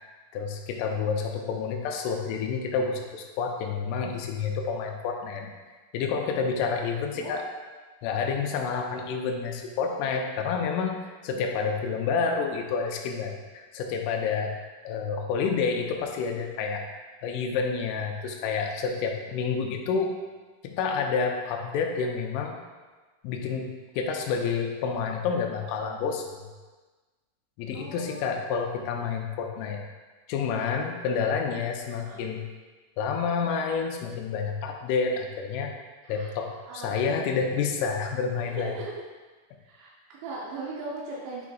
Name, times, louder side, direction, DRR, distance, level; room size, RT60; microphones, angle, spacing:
voice 1, 0.3-5.5 5.9-7.5 8.0-14.6 14.8-16.9 17.2-20.1 20.6-22.6 23.2-26.4 27.6-29.8 30.3-32.4 33.0-35.7 36.1-38.8, left 5 dB, 85° left, 2 dB, 3.1 m, -29 dB
voice 2, 27.7-28.3 32.0-32.3 36.0-36.3 36.7-37.1 38.5-39.0 39.6-41.5, right 3 dB, 80° right, -4 dB, 2.7 m, -39 dB
9.2 x 4.9 x 2.3 m, 1.3 s
omnidirectional pair, 5.7 m